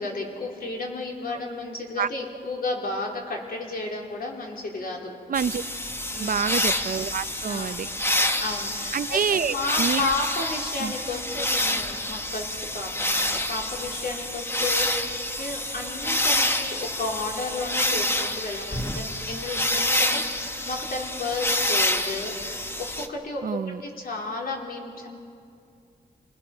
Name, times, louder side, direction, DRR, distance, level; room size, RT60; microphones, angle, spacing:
voice 1, 0.0-5.1 6.1-6.5 7.4-7.9 8.4-23.4 23.8-25.1, left 3 dB, 60° left, 0 dB, 3.7 m, -33 dB
sound 1, 5.3-23.1, left 1 dB, 15° left, 1.2 m, -27 dB
voice 2, 5.3-5.6 6.2-7.9 8.9-10.1 10.8-10.9 23.4-23.8, right 7 dB, 55° right, 15 dB, 0.6 m, -27 dB
29.0 x 20.0 x 6.1 m, 2.4 s
wide cardioid pair, 130°, 18 cm